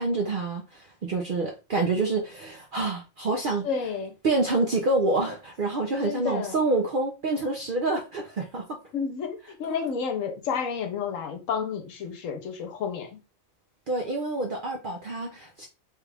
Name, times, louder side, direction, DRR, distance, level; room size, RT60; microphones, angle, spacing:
voice 1, 0.0-3.7 4.2-8.8 13.9-15.7, right 2 dB, 60° right, 0.5 m, -27 dB
voice 2, 3.6-4.1 6.0-6.6 8.9-13.2, left 6 dB, 75° left, 1.1 m, -31 dB
3.2 x 2.4 x 3.3 m
omnidirectional pair, 1.4 m